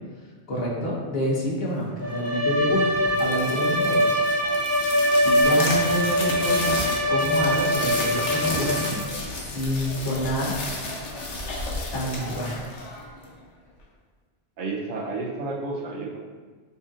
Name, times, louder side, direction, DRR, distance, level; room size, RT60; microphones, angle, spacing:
voice 1, 0.5-4.0 5.2-9.1 9.5-10.6 11.9-12.6, equal, 60° left, -4 dB, 1.2 m, -28 dB
Bowed string instrument, 2.0-9.1, equal, 25° right, 0.6 m, -23 dB
sound 1, 3.0-13.4, left 2 dB, 85° left, 1.1 m, -32 dB
voice 2, 14.6-16.2, right 3 dB, 85° right, -4 dB, 1.0 m, -31 dB
6.7 x 2.7 x 2.4 m, 1.4 s
omnidirectional pair, 1.2 m